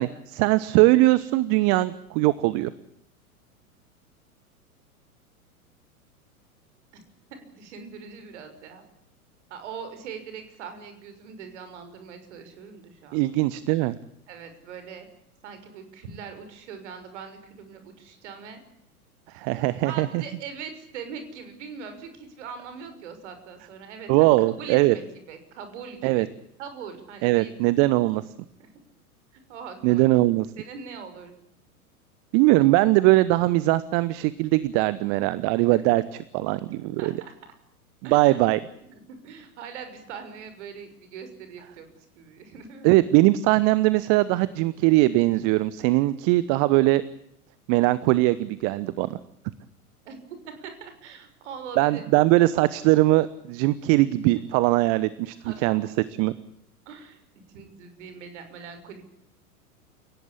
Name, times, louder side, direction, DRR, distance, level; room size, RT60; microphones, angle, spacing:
voice 1, 0.0-2.7 13.1-14.0 19.3-20.2 24.1-24.9 26.0-26.3 27.2-28.2 29.8-30.5 32.3-36.0 36.3-37.1 38.0-38.6 42.8-47.0 47.7-49.2 51.8-55.4 55.6-55.9 56.2-56.3, right 18 dB, 30° right, 17 dB, 1.0 m, -21 dB
voice 2, 7.3-8.8 9.5-13.2 14.3-15.1 15.4-18.6 19.8-24.3 24.6-26.3 26.6-27.5 28.6-28.7 29.3-30.1 30.6-31.4 35.7-35.8 37.0-37.3 38.0-38.4 38.8-43.0 50.0-52.0 55.4-55.9 56.8-57.2 57.5-59.0, right 6 dB, 50° right, 9 dB, 6.4 m, -41 dB
29.5 x 17.5 x 8.6 m, 0.76 s
figure-of-eight pair, 95°, 44 cm